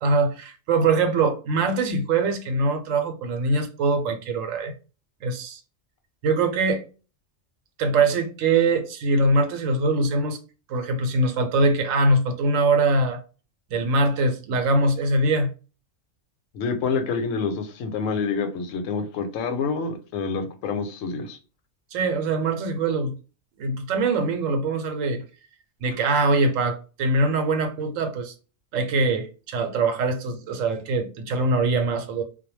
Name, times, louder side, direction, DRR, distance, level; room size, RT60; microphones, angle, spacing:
voice 1, 0.0-4.7 5.2-5.6 6.2-6.8 7.8-10.4 10.7-13.2 13.7-15.5 21.9-23.1 23.6-25.2 25.8-28.3 28.7-32.2, right 3 dB, 85° right, 1.0 m, -23 dB
voice 2, 16.5-21.4, left 5 dB, 85° left, 1.0 m, -27 dB
2.2 x 2.1 x 3.0 m
omnidirectional pair, 1.3 m